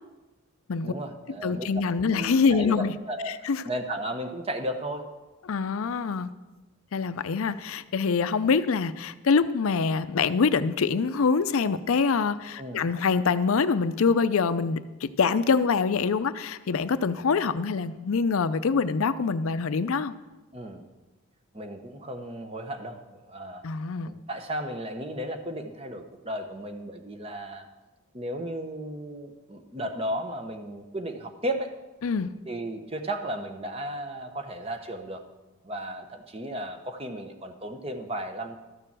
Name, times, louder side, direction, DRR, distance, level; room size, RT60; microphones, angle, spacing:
voice 1, 0.8-1.7 2.1-5.1 12.6-12.9 20.5-20.8 21.5-23.6 24.0-27.7 28.1-31.7 32.5-35.2 35.6-38.5, right 1 dB, 25° right, 6 dB, 0.9 m, -34 dB
voice 2, 1.4-2.9 3.3-3.6 5.5-6.3 6.9-20.1 23.6-24.1 32.0-32.3, left 5 dB, 75° left, 13 dB, 0.5 m, -25 dB
12.5 x 6.8 x 7.4 m, 1.1 s
head